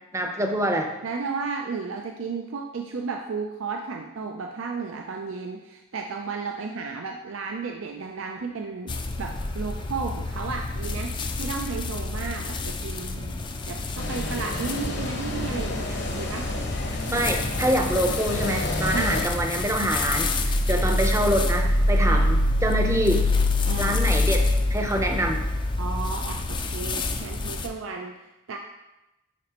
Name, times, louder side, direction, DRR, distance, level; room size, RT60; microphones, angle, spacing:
voice 1, 0.1-0.9 17.1-23.3 23.8-25.4, right 1 dB, 15° right, 3 dB, 0.6 m, -25 dB
voice 2, 1.0-16.5 17.0-17.3 18.9-19.2 20.7-20.9 22.0-22.3 23.6-24.1 25.8-28.6, right 4 dB, 80° right, 2 dB, 0.5 m, -34 dB
sound 1, 8.9-27.7, left 2 dB, 25° left, 0.4 m, -26 dB
sound 2, 14.0-19.2, left 2 dB, 60° left, 0.9 m, -32 dB
10.0 x 4.2 x 2.9 m, 0.97 s
head